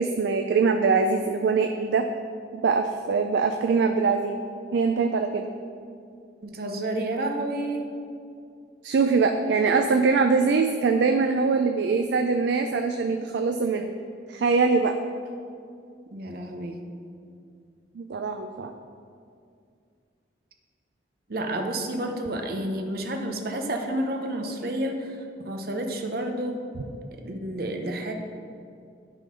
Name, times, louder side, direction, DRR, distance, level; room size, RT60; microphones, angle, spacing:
voice 1, 0.0-2.1 2.5-4.4 4.7-5.5 8.8-13.9 14.3-15.0 18.0-18.7, right 4 dB, 80° right, 6 dB, 0.4 m, -23 dB
voice 2, 6.4-7.9 16.1-16.8 21.3-26.6 27.2-28.1, right 1 dB, 55° right, 4 dB, 0.8 m, -30 dB
10.5 x 3.8 x 5.2 m, 2.4 s
head